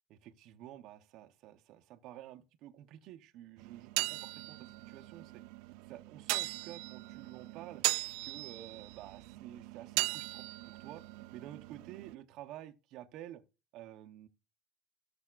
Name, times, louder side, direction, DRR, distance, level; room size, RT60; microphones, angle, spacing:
voice 1, 0.1-5.4 5.9-7.8 8.2-11.0 11.3-13.4 13.7-14.3, right 13 dB, 50° right, 0.8 m, -50 dB
sound 1, 3.6-12.2, right 23 dB, 70° right, 0.3 m, -39 dB
17.0 x 6.9 x 2.4 m
cardioid pair, 165°, 0 cm